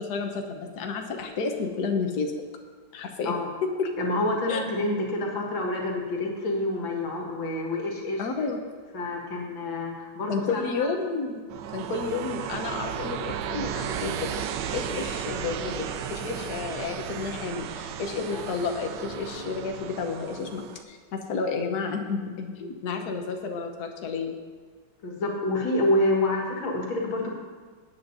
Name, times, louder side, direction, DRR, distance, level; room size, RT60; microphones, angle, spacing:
voice 1, 0.0-2.3 2.9-3.3 3.6-3.9 4.5-4.6 8.2-8.6 10.3-11.5 11.7-14.3 14.7-24.4, left 4 dB, 60° left, 3 dB, 1.4 m, -31 dB
voice 2, 4.0-8.3 8.9-10.9 18.3-18.5 25.0-27.3, left 1 dB, 80° left, -1 dB, 2.4 m, -28 dB
sound 1, 11.5-20.8, right 9 dB, 75° right, 1.2 m, -34 dB
17.5 x 8.8 x 2.7 m, 1.5 s
omnidirectional pair, 2.1 m